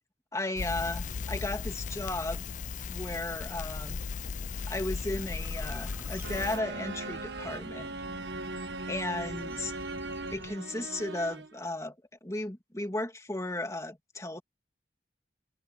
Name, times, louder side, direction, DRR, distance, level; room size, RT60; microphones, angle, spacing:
voice 1, 0.3-2.5 2.9-4.0 4.7-7.9 8.9-9.7 10.3-12.0 12.2-14.4, left 2 dB, 20° left, 2.6 m, -35 dB
Crackle, 0.6-6.6, left 5 dB, 45° left, 0.4 m, -36 dB
sound 1, 4.6-10.6, right 1 dB, 15° right, 1.8 m, -48 dB
sound 2, 6.2-11.6, right 2 dB, 85° right, 1.5 m, -39 dB
head